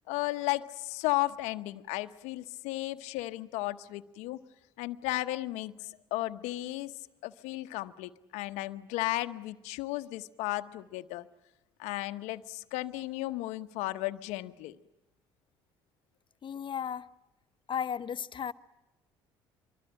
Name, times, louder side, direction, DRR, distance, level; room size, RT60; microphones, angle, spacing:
voice 1, 0.1-4.4 4.8-6.9 7.2-11.3 11.8-14.8, left 18 dB, 75° left, 0.9 m, -34 dB
voice 2, 16.4-17.1 17.7-18.5, left 8 dB, 45° left, 1.0 m, -34 dB
24.0 x 24.0 x 8.9 m
hypercardioid pair, 60°, 12 cm